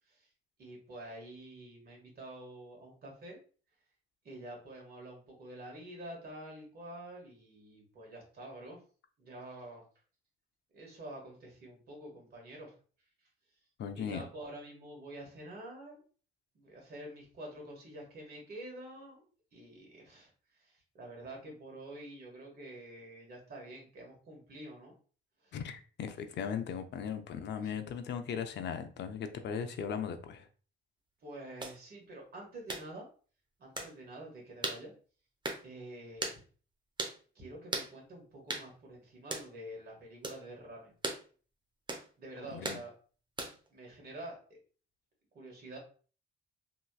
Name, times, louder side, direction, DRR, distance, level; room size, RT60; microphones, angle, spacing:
voice 1, 0.6-3.4 4.2-8.8 9.2-9.8 10.7-12.8 13.9-16.0 16.5-19.2 19.5-24.9 25.4-25.5 27.5-27.9 31.2-33.1 33.6-34.9 35.6-36.4 37.3-40.9 42.2-42.9 43.7-44.4 45.3-45.8, right 1 dB, 50° right, 1.6 m, -48 dB
voice 2, 13.8-14.2 25.5-30.5 42.5-42.8, left 7 dB, 60° left, 0.5 m, -38 dB
sound 1, 31.6-31.8 32.7-32.9 33.8-33.9 34.6-34.8 35.4-35.6 36.2-36.4 37.0-37.2 37.7-37.9 38.5-38.7 39.3-39.5 40.2-40.4 41.0-41.2 41.9-42.1 42.6-42.8 43.4-43.7, right 2 dB, 20° right, 0.7 m, -37 dB
3.1 x 3.0 x 2.3 m
cardioid pair, 90°, 20 cm